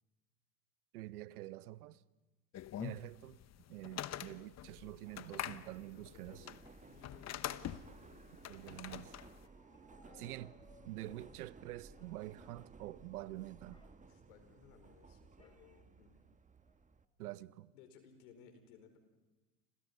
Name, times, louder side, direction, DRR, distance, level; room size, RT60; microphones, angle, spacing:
voice 1, 0.9-2.0 2.8-3.4 3.7-6.4 8.5-9.2 10.2-10.5 10.8-13.8 17.2-17.7, right 16 dB, 85° right, 0.9 m, -47 dB
sound 1, 2.5-9.5, left 11 dB, 35° left, 1.0 m, -45 dB
Subway metro underground, 5.0-17.0, right 4 dB, 15° right, 1.2 m, -59 dB
voice 2, 5.9-6.5 6.8-8.5 10.0-10.3 11.1-11.2 14.0-16.2 17.7-19.0, left 7 dB, 80° left, 5.0 m, -62 dB
Bark, 9.2-11.3 11.9-12.7 13.0-13.2 13.6-14.0 15.4-15.7 16.2-16.3 16.6-17.1, left 2 dB, 10° left, 4.5 m, -66 dB
29.5 x 27.0 x 5.5 m
supercardioid pair, 95°, 43 cm